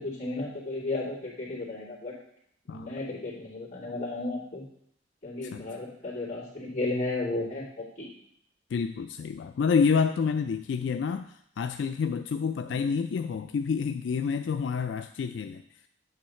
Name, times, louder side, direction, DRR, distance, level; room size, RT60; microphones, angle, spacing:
voice 1, 0.0-2.1 2.7-4.6 5.2-8.1 12.7-12.8, left 2 dB, 40° left, -6 dB, 2.7 m, -34 dB
voice 2, 8.7-15.6, left 5 dB, 85° left, 8 dB, 0.3 m, -28 dB
8.5 x 3.2 x 6.4 m, 0.70 s
head